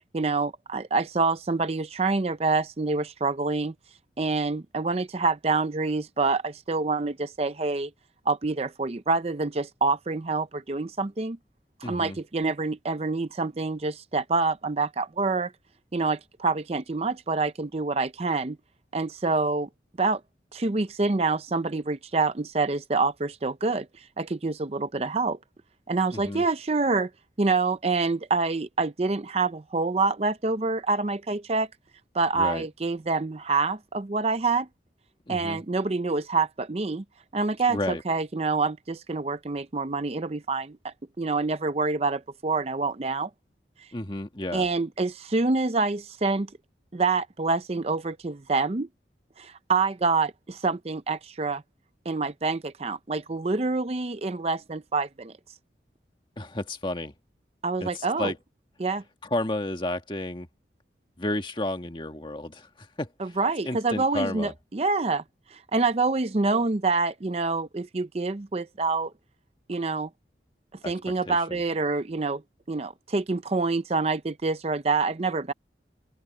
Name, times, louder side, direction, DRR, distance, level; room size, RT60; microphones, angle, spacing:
voice 1, 0.1-3.7 4.2-7.9 8.3-11.4 11.9-15.5 15.9-18.6 18.9-19.7 20.0-20.2 20.5-25.4 25.9-27.1 27.4-31.7 32.1-34.7 35.3-37.0 37.3-37.8 38.1-43.3 43.8-43.9 44.5-46.5 46.9-48.9 49.4-51.6 52.1-55.3 57.6-58.3 58.8-59.0 63.2-65.2 65.5-69.1 69.7-70.1 70.9-72.4 72.7-75.5, right 3 dB, 35° right, 0.5 m, -26 dB
voice 2, 11.8-12.2 26.1-26.4 32.3-32.7 35.3-35.6 37.7-38.0 43.9-44.7 56.4-57.1 57.8-58.4 59.2-60.5 61.2-63.4 63.6-64.5 70.8-70.9 71.3-71.6, left 1 dB, 25° left, 1.7 m, -32 dB
open air
head